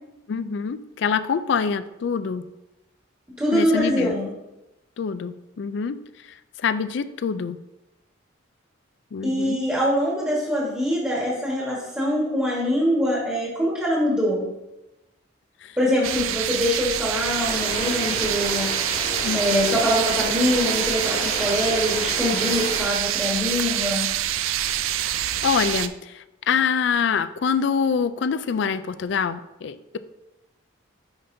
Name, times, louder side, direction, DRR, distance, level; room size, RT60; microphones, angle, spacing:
voice 1, 0.3-2.4 3.5-4.1 5.0-6.0 6.6-7.6 9.1-9.6 15.6-15.7 19.1-19.8 24.9-30.0, left 6 dB, 60° left, 13 dB, 0.3 m, -25 dB
voice 2, 3.3-4.3 9.2-14.5 15.8-18.7 19.3-24.0, equal, 10° right, -6 dB, 1.4 m, -24 dB
sound 1, 16.0-25.9, right 11 dB, 80° right, 0.4 m, -26 dB
sound 2, 17.3-22.8, left 2 dB, 40° left, 1.5 m, -32 dB
9.8 x 5.1 x 2.7 m, 0.97 s
head